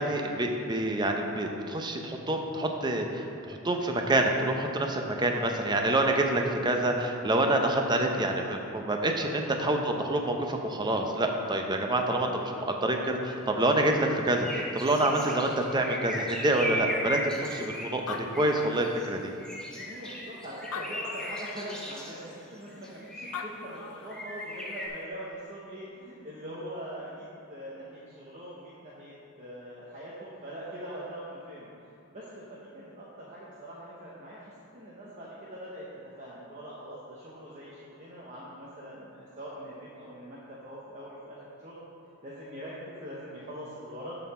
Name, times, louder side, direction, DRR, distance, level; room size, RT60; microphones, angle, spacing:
voice 1, 0.0-17.2 17.5-19.3, right 1 dB, 20° right, 3 dB, 0.6 m, -27 dB
voice 2, 9.0-9.3 19.8-31.7 32.1-35.9 36.2-41.8 42.2-44.2, equal, 35° right, -7 dB, 1.0 m, -43 dB
sound 1, 13.4-13.9 14.3-19.1 19.4-22.2 22.8-23.5 24.1-24.9, equal, 5° left, 0.9 m, -37 dB
Animal, 17.6-17.7 17.9-19.3 20.0-20.1 20.6-21.6 23.0-23.1 23.3-24.3, left 5 dB, 90° left, 0.5 m, -39 dB
12.0 x 4.1 x 4.3 m, 2.6 s
head